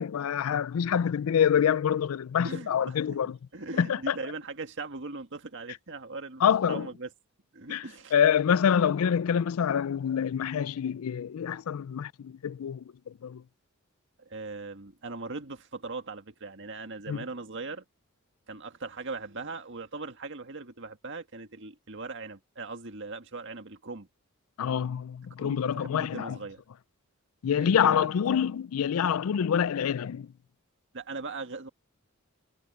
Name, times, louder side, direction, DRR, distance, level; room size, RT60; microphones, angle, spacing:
voice 1, 0.0-3.4 3.8-4.1 6.4-6.9 7.7-7.8 8.1-12.8 13.2-13.4 17.1-17.2 24.6-26.4 27.4-30.3, left 8 dB, 80° left, 0.4 m, -26 dB
voice 2, 2.4-3.2 3.5-7.1 7.5-8.1 14.2-17.8 18.5-24.1 25.4-26.6 27.5-28.1 30.9-31.7, right 3 dB, 60° right, 1.9 m, -39 dB
head